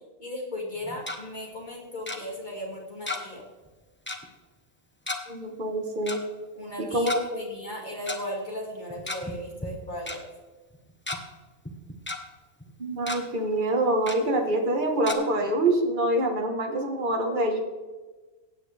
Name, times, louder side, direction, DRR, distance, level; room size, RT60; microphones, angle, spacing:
voice 1, 0.2-3.4 6.5-10.2, left 1 dB, 35° left, -2 dB, 2.4 m, -36 dB
Tick-tock, 0.8-1.2 2.1-2.2 3.1-3.4 3.7-3.8 4.1-4.3 5.1-5.2 6.1-6.2 6.9-7.2 8.1-8.2 8.9-9.3 9.6-9.7 10.1-10.2 10.7-11.2 11.7-12.2 12.6-12.7 13.0-13.2 14.1-14.2 15.1-15.2, left 2 dB, 10° left, 1.0 m, -33 dB
voice 2, 5.3-6.2 6.8-7.3 12.8-17.6, right 1 dB, 35° right, 3 dB, 1.6 m, -25 dB
16.5 x 8.9 x 3.4 m, 1.3 s
omnidirectional pair, 1.4 m